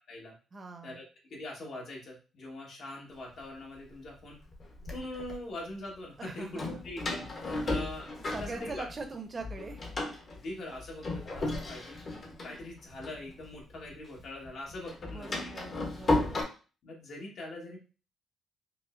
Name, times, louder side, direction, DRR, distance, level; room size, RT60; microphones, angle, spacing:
voice 1, 0.5-1.0 6.2-6.7 8.3-9.8 15.1-16.4, right 3 dB, 35° right, 6 dB, 0.7 m, -42 dB
voice 2, 1.3-4.4 4.9-8.1 8.4-8.8 10.3-12.0 12.4-15.5 16.8-17.8, left 1 dB, 65° left, -1 dB, 1.4 m, -42 dB
Door, 3.4-3.5 4.2-5.4 6.6-9.1 9.4-13.9 14.2-16.4, left 2 dB, 45° left, 1.1 m, -34 dB
5.0 x 2.0 x 2.5 m, 0.35 s
cardioid pair, 90°, 0 cm